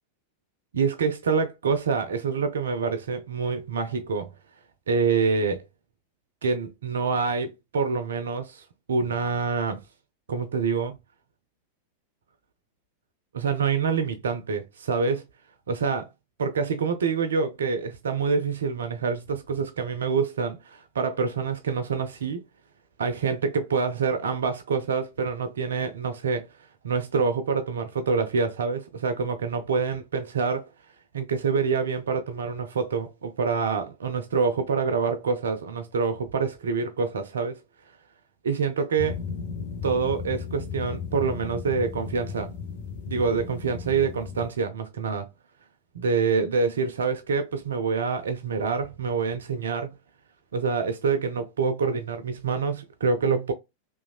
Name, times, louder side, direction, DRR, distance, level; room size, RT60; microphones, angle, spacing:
voice 1, 0.7-4.3 4.9-5.6 6.4-9.8 10.3-11.0 13.3-15.3 15.7-16.1 16.4-22.4 23.0-26.5 26.8-30.7 31.1-37.6 38.4-39.2 39.8-42.5 43.1-45.3 45.9-50.0 50.5-53.5, right 5 dB, 65° right, 0.3 m, -26 dB
sound 1, 39.0-44.5, left 6 dB, 50° left, 0.7 m, -35 dB
3.0 x 2.3 x 2.3 m
figure-of-eight pair, 90°, 0 cm